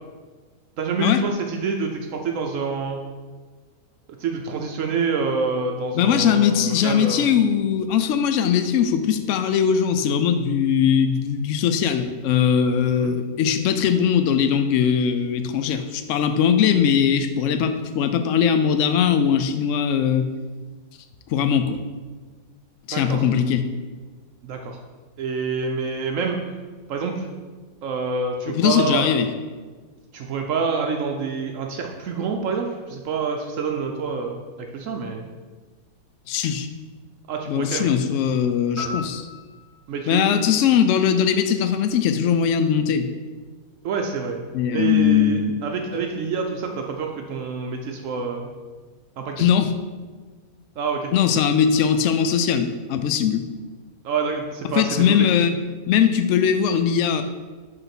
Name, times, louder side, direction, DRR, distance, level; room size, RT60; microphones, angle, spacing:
voice 1, 0.8-3.0 4.2-7.3 12.9-13.1 22.9-23.3 24.4-24.8 25.2-26.4 26.9-27.3 27.8-29.2 30.1-35.2 37.3-37.9 39.9-40.3 43.8-44.4 44.7-48.5 49.2-49.5 50.8-51.1 54.0-55.2, right 4 dB, 65° right, 3 dB, 0.9 m, -27 dB
voice 2, 6.0-20.3 21.3-21.8 22.9-23.7 28.5-29.3 36.3-36.7 37.5-39.3 40.1-43.1 44.5-45.6 49.4-49.7 51.1-53.5 54.8-55.5 55.9-57.2, left 8 dB, 70° left, 9 dB, 0.8 m, -20 dB
sound 1, 38.8-41.2, left 3 dB, 35° right, 1.7 m, -37 dB
5.5 x 3.8 x 5.8 m, 1.4 s
omnidirectional pair, 1.5 m